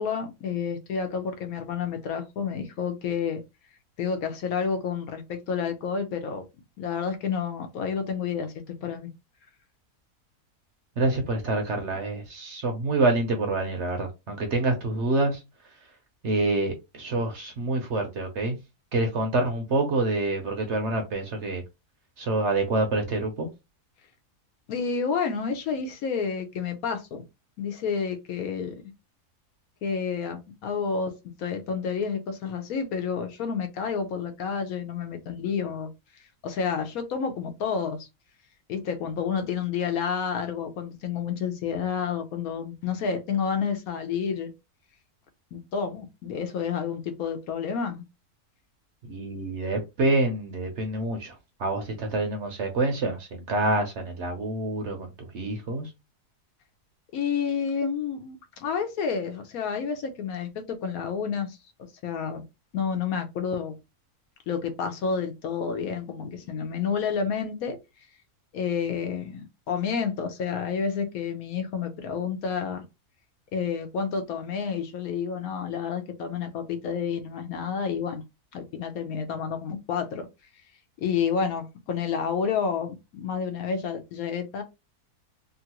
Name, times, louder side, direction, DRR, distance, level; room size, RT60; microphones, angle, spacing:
voice 1, 0.0-3.4 4.0-6.4 6.8-8.5 8.8-9.1 24.7-27.2 27.6-28.7 29.8-35.9 36.4-38.1 38.7-44.5 45.5-48.0 57.1-61.6 62.0-62.4 62.7-63.7 64.5-67.8 68.5-72.8 73.5-78.2 78.5-80.2 81.0-84.6, left 6 dB, 70° left, 1.0 m, -30 dB
voice 2, 11.0-15.4 16.2-18.6 18.9-21.6 22.2-23.5 49.1-55.9, right 2 dB, 60° right, 0.8 m, -27 dB
3.0 x 2.4 x 2.8 m
omnidirectional pair, 1.6 m